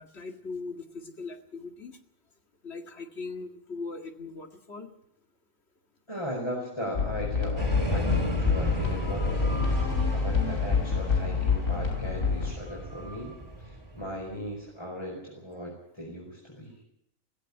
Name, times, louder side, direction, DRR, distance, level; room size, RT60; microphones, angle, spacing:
voice 1, 0.0-2.0 2.6-4.9, left 4 dB, 50° left, 5 dB, 2.2 m, -40 dB
voice 2, 6.1-9.6 10.1-16.7, equal, 20° left, -3 dB, 5.2 m, -37 dB
sound 1, 6.9-12.5, left 5 dB, 80° left, 3.8 m, -27 dB
sound 2, 7.6-14.3, right 1 dB, 20° right, 3.5 m, -34 dB
17.5 x 16.5 x 9.8 m, 0.75 s
omnidirectional pair, 1.4 m